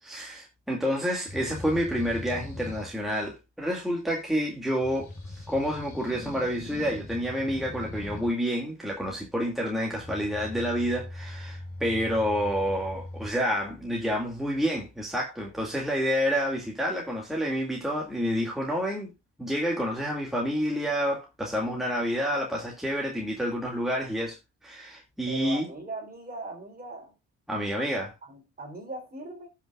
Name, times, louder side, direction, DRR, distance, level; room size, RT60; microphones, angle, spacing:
voice 1, 0.0-19.1 19.4-24.4 24.6-25.7 27.5-28.1, equal, ahead, 2.2 m, -29 dB
sound 1, 1.3-2.9 4.8-8.3 10.0-13.3, left 2 dB, 30° left, 5.0 m, -40 dB
voice 2, 25.3-27.1 28.2-29.5, right 2 dB, 30° right, 3.9 m, -39 dB
17.0 x 6.0 x 2.4 m
cardioid pair, 90°, 30 cm